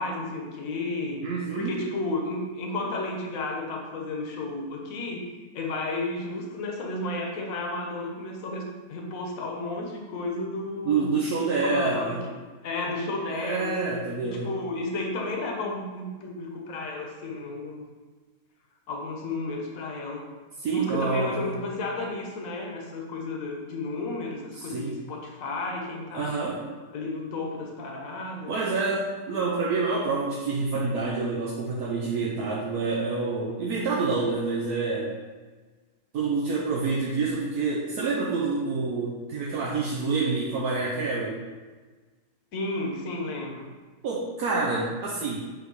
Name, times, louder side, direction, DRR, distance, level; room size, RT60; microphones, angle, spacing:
voice 1, 0.0-1.2 1.5-5.3 5.5-11.2 11.6-12.2 12.6-13.9 14.2-17.9 18.9-20.3 20.7-26.5 26.9-28.5 42.5-43.7, left 2 dB, 60° left, 1 dB, 1.4 m, -32 dB
voice 2, 1.2-1.8 10.8-12.2 13.3-14.5 20.6-21.5 24.5-25.0 26.1-26.6 28.5-35.1 36.1-41.5 44.0-45.4, right 4 dB, 75° right, -3 dB, 1.3 m, -27 dB
8.3 x 3.3 x 4.8 m, 1.3 s
omnidirectional pair, 1.7 m